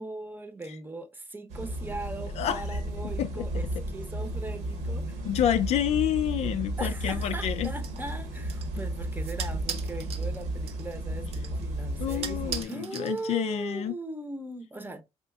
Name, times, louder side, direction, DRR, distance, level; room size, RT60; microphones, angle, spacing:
voice 1, 0.0-5.2 6.8-15.0, right 2 dB, 15° right, 0.8 m, -39 dB
sound 1, 1.5-12.6, right 1 dB, 80° right, 1.3 m, -33 dB
voice 2, 2.4-3.5 5.2-7.7 12.0-14.0, left 10 dB, 60° left, 0.4 m, -29 dB
sound 2, 7.2-13.7, right 7 dB, 55° right, 0.6 m, -42 dB
4.2 x 2.7 x 2.3 m
supercardioid pair, 80°, 12 cm